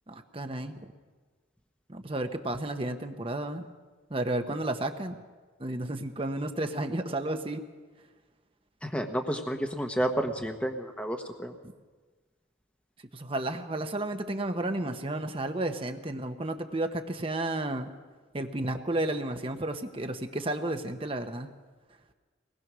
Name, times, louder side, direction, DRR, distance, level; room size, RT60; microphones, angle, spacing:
voice 1, 0.1-0.7 1.9-3.7 4.1-5.2 5.6-7.6 13.1-17.9 18.3-21.5, right 1 dB, 25° right, 6 dB, 1.0 m, -32 dB
voice 2, 8.8-11.5, right 1 dB, 5° left, 4 dB, 1.1 m, -31 dB
23.0 x 19.5 x 6.2 m, 1.4 s
head